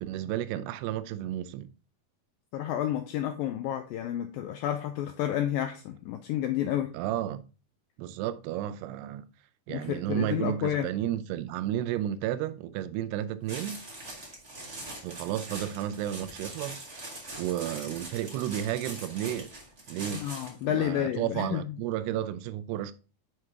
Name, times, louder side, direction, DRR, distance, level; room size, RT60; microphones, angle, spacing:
voice 1, 0.0-1.7 6.9-7.4 8.0-9.3 9.7-13.8 15.0-19.5 19.9-20.2 20.6-22.9, right 11 dB, 90° right, 2.7 m, -32 dB
voice 2, 2.5-6.9 9.7-10.9 20.1-21.6, left 11 dB, 85° left, 2.0 m, -30 dB
sound 1, 13.5-20.6, right 2 dB, 50° right, 0.8 m, -42 dB
7.7 x 4.6 x 3.5 m
omnidirectional pair, 4.7 m